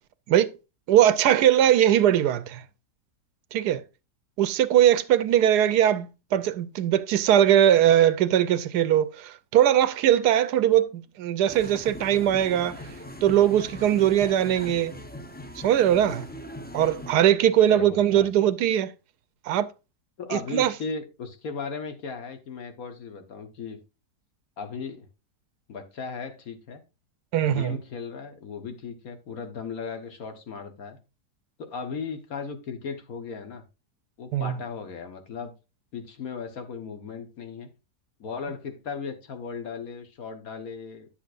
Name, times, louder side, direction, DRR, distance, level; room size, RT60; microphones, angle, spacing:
voice 1, 0.9-2.6 3.5-3.8 4.4-12.7 13.2-14.9 15.6-16.3 16.7-18.9 19.5-19.7 20.3-20.7 27.3-27.8 34.3-34.6, right 11 dB, 80° right, 1.2 m, -21 dB
sound 1, 11.5-17.1, left 1 dB, 15° left, 0.3 m, -40 dB
voice 2, 17.7-18.3 20.2-23.8 24.6-25.1 25.7-26.8 27.4-31.0 31.6-33.6 34.2-35.5 35.9-37.7 38.2-41.1, left 5 dB, 60° left, 1.6 m, -36 dB
9.8 x 7.3 x 2.5 m
omnidirectional pair, 1.7 m